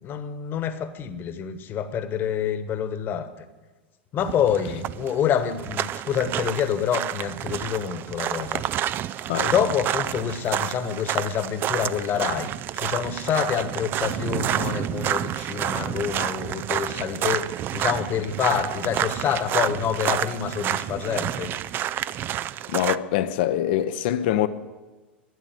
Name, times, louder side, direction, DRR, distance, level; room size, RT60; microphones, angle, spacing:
voice 1, 0.0-3.3 4.1-8.6 9.4-21.5, left 8 dB, 35° left, 1.3 m, -27 dB
sound 1, 4.2-23.0, right 11 dB, 35° right, 0.4 m, -29 dB
voice 2, 22.7-24.5, left 12 dB, 60° left, 0.7 m, -24 dB
13.0 x 11.0 x 7.6 m
figure-of-eight pair, 85°, 6 cm